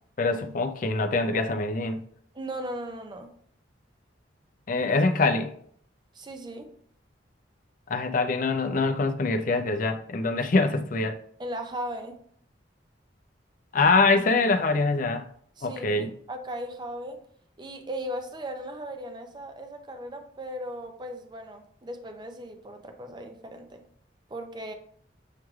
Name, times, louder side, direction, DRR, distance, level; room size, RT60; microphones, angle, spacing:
voice 1, 0.2-2.0 4.7-5.5 7.9-11.2 13.7-15.3 15.6-16.1, left 3 dB, 45° left, 0.4 m, -24 dB
voice 2, 2.3-3.3 6.1-6.7 11.4-12.2 15.6-17.2 17.6-23.8 24.3-24.7, equal, 25° right, 0.5 m, -37 dB
7.3 x 3.1 x 2.3 m
head